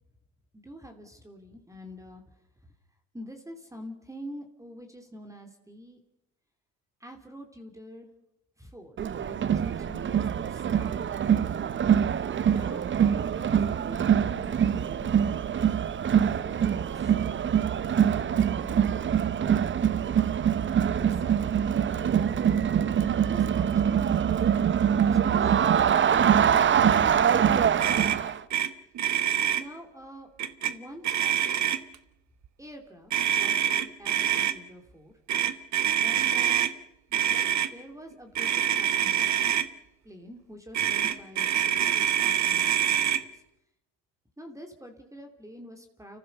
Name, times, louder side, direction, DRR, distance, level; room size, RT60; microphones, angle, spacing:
voice 1, 0.5-2.2 3.1-6.0 7.0-8.1 8.6-11.5 12.5-15.7 23.2-25.9 29.5-30.3 30.7-31.7 32.6-35.1 36.0-36.6 37.1-39.4 40.0-43.4 44.4-46.2, equal, 10° right, 4 dB, 3.1 m, -47 dB
Crowd, 9.0-28.4, right 8 dB, 30° right, 0.8 m, -24 dB
Motor vehicle (road), 27.8-28.2 28.5-28.7 29.0-29.6 30.4-30.7 31.0-32.0 33.1-34.5 35.3-36.7 37.1-37.7 38.4-39.7 40.7-43.2, right 10 dB, 50° right, 1.4 m, -25 dB
30.0 x 15.0 x 6.7 m, 0.87 s
hypercardioid pair, 70°, 37 cm